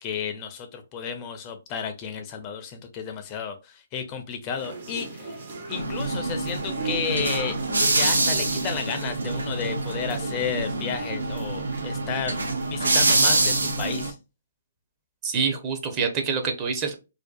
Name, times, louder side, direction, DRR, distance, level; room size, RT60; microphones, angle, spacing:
voice 1, 0.0-5.4 5.7-7.6 7.9-14.2, left 7 dB, 30° left, 7 dB, 0.4 m, -32 dB
sound 1, 4.6-13.8, right 3 dB, 60° right, 0.8 m, -39 dB
sound 2, 5.7-14.1, right 2 dB, 90° right, 0.5 m, -25 dB
voice 2, 15.2-17.0, right 5 dB, 25° right, 4 dB, 0.6 m, -26 dB
2.6 x 2.2 x 2.2 m, 0.28 s
hypercardioid pair, 140°, 0 cm